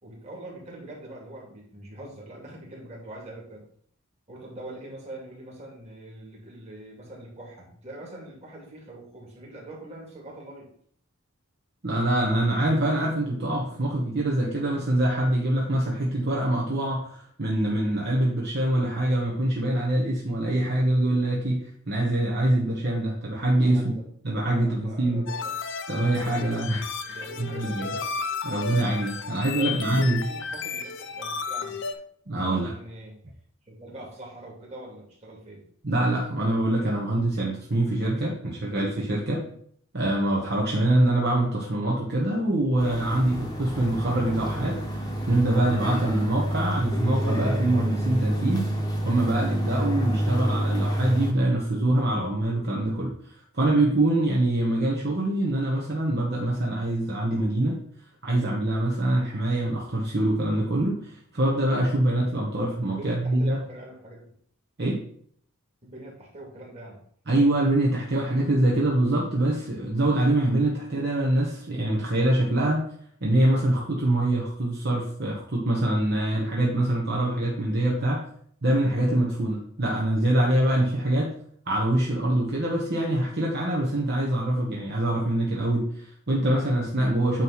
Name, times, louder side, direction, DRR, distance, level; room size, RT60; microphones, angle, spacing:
voice 1, 0.0-3.6 4.3-10.7 23.6-24.0 24.6-25.5 27.1-28.2 29.4-31.8 32.4-33.2 33.7-35.6 39.3-39.5 63.0-64.3 65.8-67.0, right 1 dB, 30° right, -3 dB, 2.3 m, -43 dB
voice 2, 11.8-23.9 24.2-25.3 25.9-27.9 28.4-30.2 32.3-32.8 35.8-39.4 39.9-48.7 49.0-53.1 53.5-57.8 58.2-63.6 64.8-65.0 67.3-72.9 73.2-78.2 78.6-81.3 81.7-87.4, right 1 dB, 50° right, -3 dB, 1.1 m, -24 dB
sound 1, 25.3-31.9, left 5 dB, 60° left, 0.6 m, -33 dB
sound 2, 42.8-51.3, right 1 dB, 20° left, 1.1 m, -28 dB
9.0 x 3.1 x 5.6 m, 0.62 s
head